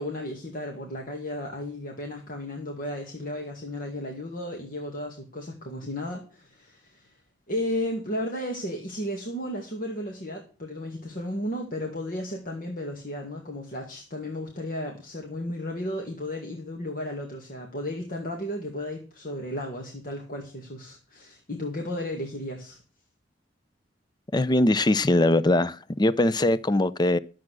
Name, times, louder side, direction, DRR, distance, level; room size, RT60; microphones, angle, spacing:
voice 1, 0.0-7.2 7.5-22.8, left 1 dB, 50° left, 2.1 m, -34 dB
voice 2, 24.3-27.2, left 1 dB, 25° left, 0.5 m, -21 dB
12.0 x 7.6 x 6.2 m
head